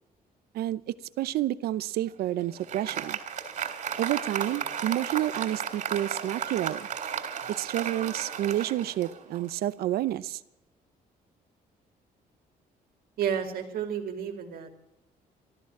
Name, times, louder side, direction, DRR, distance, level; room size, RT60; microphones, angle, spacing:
voice 1, 0.5-3.2 4.0-6.9 7.6-10.4, right 13 dB, 85° right, 16 dB, 0.7 m, -29 dB
Applause, 2.1-9.6, right 8 dB, 50° right, 3.3 m, -34 dB
voice 2, 13.2-14.8, right 8 dB, 70° right, 4 dB, 2.6 m, -31 dB
14.0 x 13.0 x 7.2 m, 0.91 s
cardioid pair, 130°, 16 cm